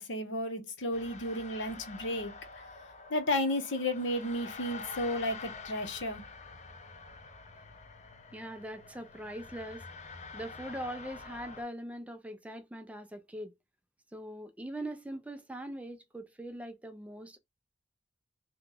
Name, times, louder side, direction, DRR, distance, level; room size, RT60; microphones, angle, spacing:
voice 1, 0.0-2.3 3.1-6.2, left 1 dB, 85° left, 0.8 m, -33 dB
sound 1, 0.9-11.6, left 4 dB, 40° left, 0.6 m, -47 dB
voice 2, 8.3-9.9 10.3-13.5 14.1-17.4, right 1 dB, 10° right, 0.4 m, -41 dB
2.8 x 2.3 x 3.7 m
head